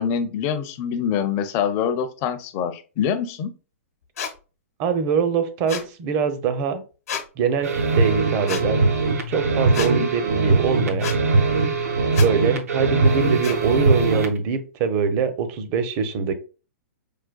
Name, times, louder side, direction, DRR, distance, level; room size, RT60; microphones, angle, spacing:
voice 1, 0.0-3.5 9.8-10.1, left 7 dB, 35° left, 9 dB, 0.5 m, -25 dB
sound 1, 4.2-4.3 5.7-5.9 7.1-7.3 8.5-8.6 9.7-9.9 11.0-11.2 12.1-12.3 13.4-13.6, left 7 dB, 80° left, 0.9 m, -30 dB
voice 2, 4.8-6.8 7.4-8.8 9.3-11.1 12.2-16.3, right 6 dB, 35° right, 9 dB, 0.6 m, -23 dB
sound 2, 7.6-14.4, right 3 dB, 80° right, 0.7 m, -21 dB
4.8 x 2.2 x 2.2 m, 0.34 s
hypercardioid pair, 120°, 8 cm